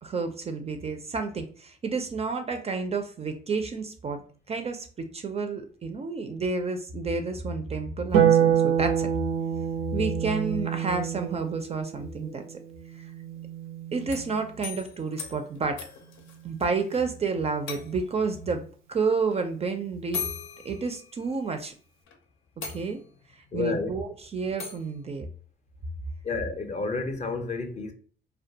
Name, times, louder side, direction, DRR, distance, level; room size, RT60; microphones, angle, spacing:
voice 1, 0.0-4.2 4.5-9.1 9.9-12.6 13.0-13.1 13.9-15.8 16.4-18.6 18.9-20.2 20.6-21.7 22.7-23.0 23.5-25.3, right 4 dB, 30° right, 0.4 m, -30 dB
Harp, 8.1-14.6 16.3-17.3, right 9 dB, 85° right, 0.5 m, -27 dB
sound 1, 14.0-17.0 17.3-17.4 17.7-18.2 19.3-19.4 20.1-21.6 22.1-22.2 22.6-23.3 24.6-24.9, left 6 dB, 80° left, 0.5 m, -39 dB
voice 2, 23.5-23.9 26.2-27.9, left 4 dB, 35° left, 0.5 m, -30 dB
2.3 x 2.2 x 2.6 m
cardioid pair, 90°, 20 cm